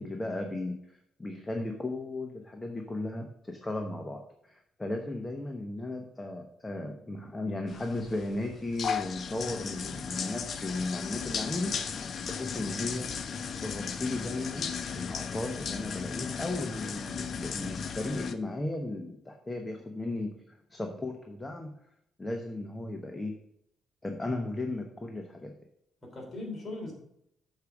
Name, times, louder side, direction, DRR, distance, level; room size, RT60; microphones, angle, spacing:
voice 1, 0.0-11.8 12.3-13.1 13.6-21.7 22.2-23.4 24.0-25.5, left 2 dB, 15° left, 3 dB, 0.9 m, -35 dB
sound 1, 7.7-18.3, left 6 dB, 55° left, 0.6 m, -36 dB
voice 2, 16.4-16.9 19.9-20.0 26.0-26.9, left 2 dB, 35° left, -1 dB, 3.4 m, -41 dB
6.6 x 4.8 x 5.9 m, 0.76 s
cardioid pair, 90°, 0 cm